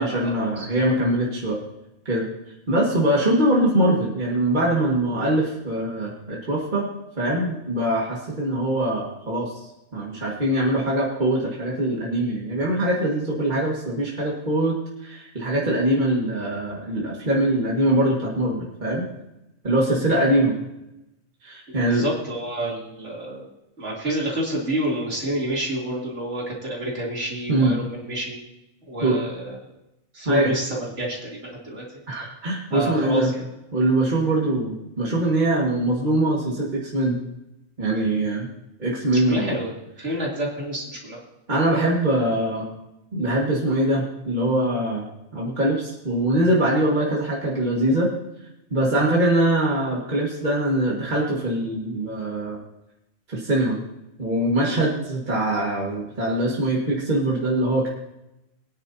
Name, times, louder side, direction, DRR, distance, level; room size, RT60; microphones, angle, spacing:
voice 1, 0.0-1.6 2.1-2.3 2.7-6.9 7.2-9.6 9.9-19.1 19.6-20.6 21.4-22.0 27.5-27.8 29.0-29.2 30.3-30.5 32.1-33.3 33.7-37.2 37.8-38.5 38.8-39.5 40.0-40.2 41.5-42.7 43.1-45.1 45.3-48.1 48.7-52.6 53.3-53.8 54.2-57.9, right 1 dB, 35° right, -4 dB, 2.0 m, -22 dB
voice 2, 21.7-23.5 23.8-28.4 28.9-29.5 30.1-31.8 32.7-33.4 39.1-39.7 40.0-41.2 54.6-54.9, right 1 dB, 60° right, -4 dB, 3.5 m, -28 dB
22.0 x 9.8 x 2.8 m, 0.90 s
omnidirectional pair, 1.4 m